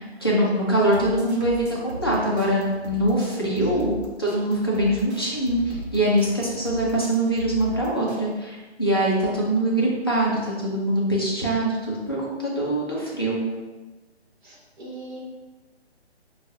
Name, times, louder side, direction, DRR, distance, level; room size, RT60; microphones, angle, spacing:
voice 1, 0.0-13.4, right 1 dB, 25° left, -6 dB, 0.4 m, -23 dB
sound 1, 0.8-8.3, equal, 75° right, 0.9 m, -38 dB
voice 2, 3.6-4.0 14.4-15.2, right 1 dB, 45° right, -4 dB, 1.1 m, -38 dB
4.7 x 2.3 x 2.6 m, 1.2 s
hypercardioid pair, 170°, 33 cm